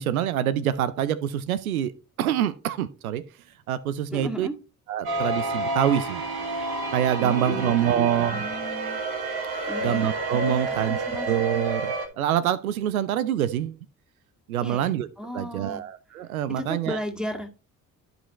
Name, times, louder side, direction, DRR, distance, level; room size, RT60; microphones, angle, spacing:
voice 1, 0.0-1.9 2.2-3.2 3.7-4.5 4.9-6.2 6.9-8.5 9.8-11.0 11.3-13.8 14.5-15.1 15.3-17.0, right 11 dB, 90° right, 0.5 m, -25 dB
voice 2, 4.1-4.6 7.2-9.0 9.7-10.1 10.5-11.3 14.6-15.8 16.6-17.5, equal, ahead, 2.1 m, -35 dB
sound 1, 5.0-12.1, right 2 dB, 60° right, 2.0 m, -29 dB
13.5 x 5.1 x 3.0 m
hypercardioid pair, 45°, 41 cm